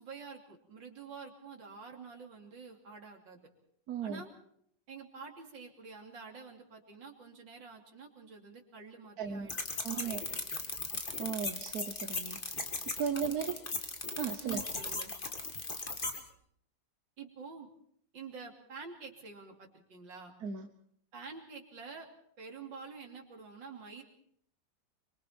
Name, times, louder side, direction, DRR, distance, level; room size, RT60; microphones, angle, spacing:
voice 1, 0.0-3.4 4.0-4.3 4.9-9.5 9.9-10.4 14.4-15.1 17.2-17.7 18.1-20.3 21.1-22.1 22.4-24.0, right 5 dB, 75° right, 1 dB, 3.7 m, -48 dB
voice 2, 3.9-4.2 9.2-9.5 9.8-10.2 11.2-12.7 13.0-13.6 14.2-14.7 20.4-20.7, right 7 dB, 60° right, 6 dB, 1.4 m, -36 dB
sound 1, 9.5-16.2, left 3 dB, 30° left, 1.9 m, -38 dB
24.5 x 24.0 x 4.4 m, 0.67 s
omnidirectional pair, 2.0 m